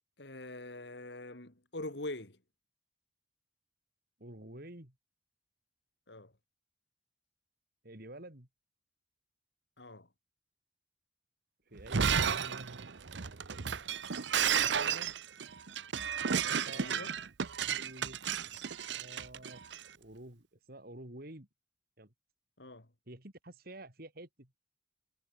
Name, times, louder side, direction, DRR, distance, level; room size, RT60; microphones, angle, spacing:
voice 1, 0.2-2.4 6.1-6.3 9.8-10.1 14.2-14.4 16.7-17.1 22.6-22.9, left 2 dB, 70° left, 3.1 m, -44 dB
voice 2, 4.2-4.9 7.8-8.5 11.7-12.7 14.4-15.1 16.4-17.1 17.6-18.2 18.9-19.6 20.0-21.5 22.0-22.1 23.1-24.6, right 1 dB, 55° right, 3.8 m, -49 dB
Shatter, 11.8-19.8, right 7 dB, 80° right, 0.9 m, -33 dB
head